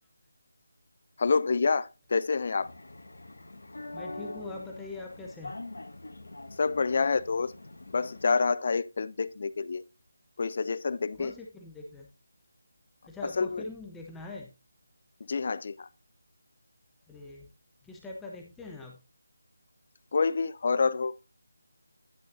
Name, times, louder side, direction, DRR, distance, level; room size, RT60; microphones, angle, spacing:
voice 1, 1.2-2.7 6.5-7.5 7.9-9.8 10.4-11.3 13.2-13.6 15.2-15.9 20.1-21.2, left 4 dB, 45° left, 0.4 m, -28 dB
sound 1, 2.6-8.2, left 2 dB, 85° left, 1.5 m, -44 dB
voice 2, 3.9-5.5 11.2-12.1 13.1-14.5 17.1-17.5 17.8-19.0, left 3 dB, 5° left, 0.8 m, -42 dB
10.5 x 8.8 x 2.6 m
figure-of-eight pair, 170°, 0 cm